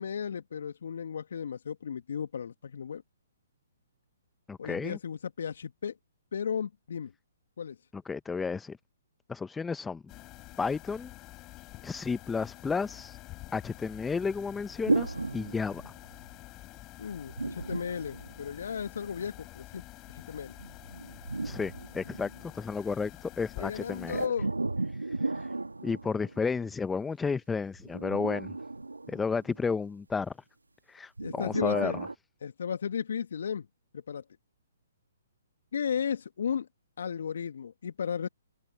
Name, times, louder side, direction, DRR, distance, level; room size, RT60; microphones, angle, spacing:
voice 1, 0.0-3.0 4.6-5.9 6.3-7.1 7.6-7.8 17.0-19.8 20.1-20.6 23.6-24.5 31.2-32.0 32.4-33.6 33.9-34.2 35.7-36.7 37.0-38.3, left 7 dB, 65° left, 1.7 m, -34 dB
voice 2, 4.5-5.0 7.9-8.8 9.3-10.0 10.6-11.1 11.8-13.2 13.5-15.8 21.4-22.3 22.5-24.3 25.2-25.5 25.8-28.6 29.1-30.3 30.9-32.1, left 5 dB, 10° left, 0.9 m, -32 dB
sound 1, 10.1-24.3, left 19 dB, 25° left, 4.7 m, -48 dB
sound 2, 14.8-16.3 17.3-18.9 20.6-22.6 24.1-26.7 27.8-29.7 31.2-32.1, right 2 dB, 90° right, 2.0 m, -34 dB
figure-of-eight pair, 130°, 0 cm